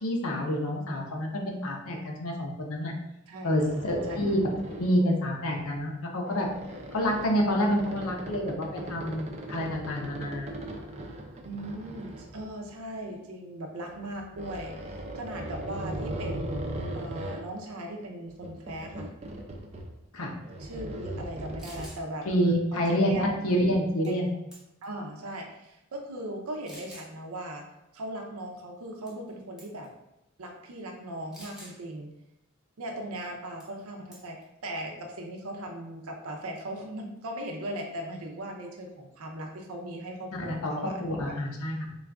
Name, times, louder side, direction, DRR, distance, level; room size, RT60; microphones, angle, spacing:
voice 1, 0.0-2.9 3.4-4.4 4.7-6.5 6.9-10.5 20.1-20.3 22.2-24.3 40.4-41.9, equal, 80° left, 1 dB, 0.7 m, -28 dB
voice 2, 3.3-3.8 4.1-4.2 11.4-16.6 16.9-19.1 20.6-22.3 22.7-23.4 24.1-24.2 24.8-27.6 27.9-29.9 30.4-32.1 32.8-41.0 41.3-41.4, right 1 dB, 85° right, 2 dB, 0.6 m, -38 dB
balloon movement sounds, 3.5-5.0 5.5-5.8 6.3-13.0 13.8-17.4 18.3-20.0 20.2-21.9, right 1 dB, 30° right, 0.4 m, -38 dB
sound 1, 21.6-22.0 24.0-24.3 24.5-24.9 25.6-25.7 26.7-27.1 29.1-29.3 29.6-29.9 31.3-31.8 33.6-33.8 34.1-34.4, right 1 dB, 5° right, 0.7 m, -48 dB
3.8 x 2.4 x 3.4 m, 0.90 s
head